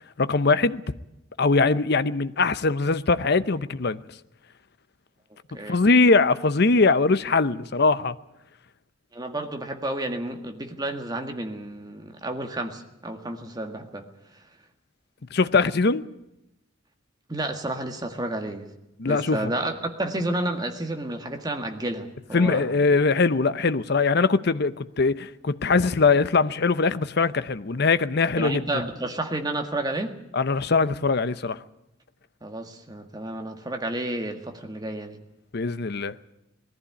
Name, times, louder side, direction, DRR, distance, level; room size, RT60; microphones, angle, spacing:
voice 1, 0.2-0.8 1.4-4.0 5.7-8.2 15.3-16.0 19.0-19.5 22.3-28.6 30.3-31.6 35.5-36.2, left 4 dB, 55° left, 0.7 m, -21 dB
voice 2, 9.1-14.0 17.3-18.7 19.1-22.7 28.4-30.2 32.4-35.2, right 1 dB, 20° right, 1.8 m, -31 dB
19.5 x 14.5 x 9.8 m
head